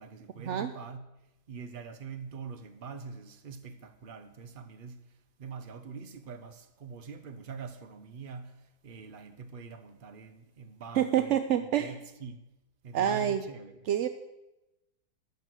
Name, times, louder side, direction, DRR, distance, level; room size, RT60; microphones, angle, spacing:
voice 1, 0.0-12.4 12.8-13.9, right 5 dB, 40° right, 0.8 m, -44 dB
voice 2, 10.9-12.0 12.9-13.4 13.9-14.1, right 10 dB, 70° right, 0.6 m, -27 dB
13.0 x 6.3 x 7.6 m
omnidirectional pair, 1.8 m